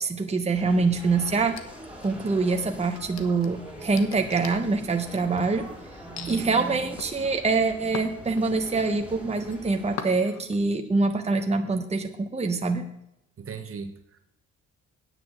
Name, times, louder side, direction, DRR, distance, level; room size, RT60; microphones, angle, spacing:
voice 1, 0.0-1.6 2.0-5.7 6.0-12.8, right 3 dB, 20° right, 4 dB, 1.2 m, -25 dB
sound 1, 0.5-10.0, equal, 5° right, 3.3 m, -43 dB
sound 2, 1.4-2.4 2.8-5.5 6.2-6.4 7.0-8.8 9.2-9.6 10.0-10.6, left 7 dB, 65° left, 1.3 m, -40 dB
voice 2, 13.4-14.2, right 5 dB, 45° right, 7 dB, 1.3 m, -38 dB
9.7 x 6.2 x 8.0 m, 0.81 s
cardioid pair, 90°, 30 cm